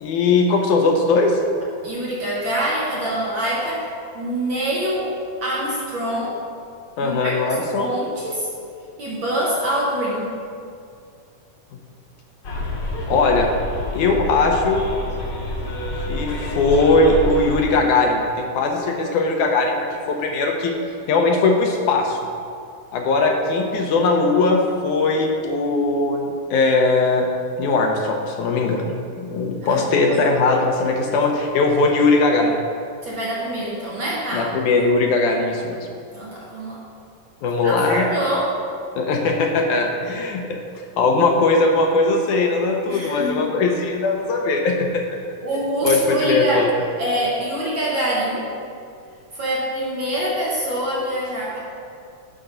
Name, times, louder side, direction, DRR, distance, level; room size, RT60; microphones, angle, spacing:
voice 1, 0.0-1.4 7.0-7.9 13.1-13.5 13.9-14.8 16.1-20.7 21.1-22.2 22.9-27.3 27.6-32.6 34.3-35.9 37.4-38.1 39.0-40.6 41.0-45.2 45.8-46.7, left 3 dB, 75° left, 2 dB, 2.0 m, -19 dB
voice 2, 1.8-3.9 4.1-5.1 5.4-6.3 7.0-8.5 9.0-10.3 29.6-30.3 33.0-34.5 36.1-36.8 37.6-38.5 42.9-43.5 45.4-46.7 47.0-48.5 49.3-51.6, right 1 dB, 65° right, -4 dB, 1.2 m, -25 dB
Bus, 12.4-17.7, left 2 dB, 50° left, 1.4 m, -28 dB
12.0 x 5.9 x 3.9 m, 2.3 s
omnidirectional pair, 3.8 m